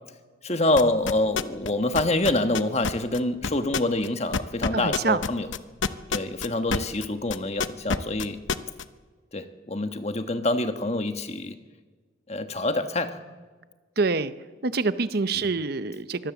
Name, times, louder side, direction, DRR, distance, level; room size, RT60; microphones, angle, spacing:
voice 1, 0.4-5.5 6.1-8.4 9.3-11.6 12.3-13.2 15.4-15.5, left 2 dB, 35° left, 8 dB, 1.3 m, -26 dB
sound 1, 0.8-1.7 1.9-7.0 7.3-8.8, left 5 dB, 70° left, 0.9 m, -26 dB
voice 2, 4.7-5.2 14.0-14.3 14.6-16.3, right 3 dB, 50° right, 13 dB, 0.7 m, -26 dB
24.5 x 18.5 x 7.1 m, 1.4 s
head